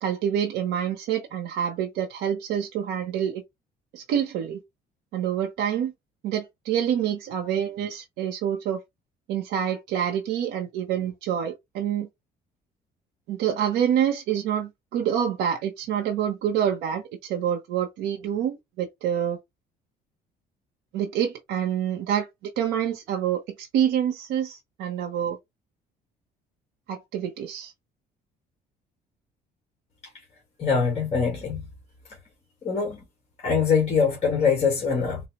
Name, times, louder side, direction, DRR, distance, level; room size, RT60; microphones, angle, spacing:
voice 1, 0.0-3.4 3.9-4.6 5.1-5.9 6.2-8.8 9.3-12.1 13.3-19.4 20.9-25.4 26.9-27.7, right 9 dB, 90° right, 0.7 m, -27 dB
voice 2, 30.6-31.6 32.6-33.0 33.4-35.2, left 6 dB, 40° left, 1.5 m, -23 dB
3.9 x 2.0 x 2.9 m
cardioid pair, 110°, 17 cm